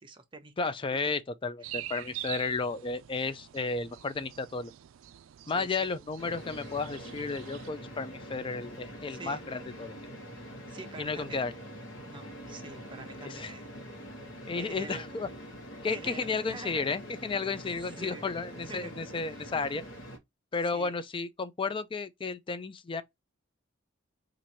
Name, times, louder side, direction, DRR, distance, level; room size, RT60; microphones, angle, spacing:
voice 1, 0.0-1.1 1.6-1.8 5.5-5.8 9.1-9.4 10.7-11.4 12.1-13.6 14.5-15.1 15.9-16.9 17.8-18.3 18.7-19.0 19.3-19.4 20.7-20.9, right 3 dB, 25° right, 0.7 m, -46 dB
voice 2, 0.6-4.7 5.5-9.9 11.0-11.5 13.2-13.5 14.5-15.3 15.8-19.8 20.5-23.0, left 4 dB, 25° left, 0.4 m, -33 dB
sound 1, 1.6-7.7, right 14 dB, 75° right, 0.3 m, -45 dB
sound 2, 6.2-20.2, equal, 70° left, 1.1 m, -44 dB
4.5 x 2.6 x 2.7 m
head